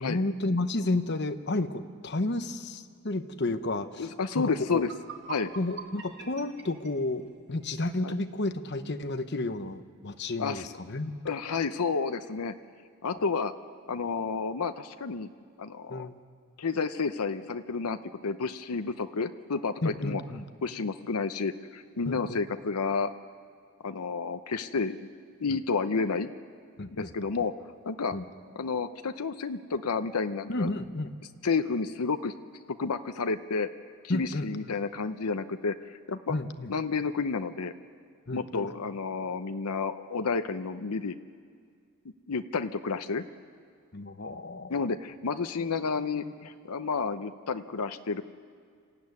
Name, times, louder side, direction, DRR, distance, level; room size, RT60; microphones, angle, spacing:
voice 1, 0.0-4.1 4.4-4.8 5.6-11.2 15.9-16.2 19.8-20.4 22.1-22.4 26.8-27.3 28.1-28.2 30.5-31.2 34.1-34.5 36.3-36.7 38.3-38.7 43.9-44.7 45.6-45.7 46.2-46.3, left 2 dB, 50° left, 9 dB, 0.9 m, -32 dB
voice 2, 4.0-4.9 5.3-5.5 8.0-8.1 10.4-10.7 11.2-12.5 13.0-13.5 13.9-15.3 15.6-16.1 16.6-20.2 20.6-23.1 23.8-25.1 25.4-26.3 26.9-27.5 27.8-28.2 28.6-30.7 31.4-32.3 32.7-33.7 34.0-36.3 36.7-37.7 38.3-41.1 42.3-43.2 44.7-48.2, left 4 dB, 90° left, 8 dB, 0.7 m, -30 dB
sound 1, 4.7-7.8, right 5 dB, 50° right, 1.6 m, -44 dB
26.5 x 14.0 x 9.6 m, 2.1 s
head